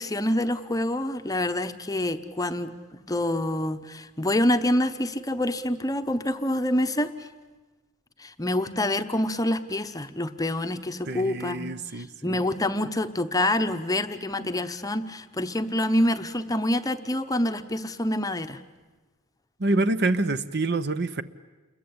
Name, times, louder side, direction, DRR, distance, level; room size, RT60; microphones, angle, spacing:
voice 1, 0.0-7.3 8.2-18.6, left 1 dB, 15° left, 0.8 m, -27 dB
voice 2, 11.1-12.4 19.6-21.2, right 2 dB, 50° right, 0.8 m, -26 dB
29.0 x 22.0 x 8.6 m
head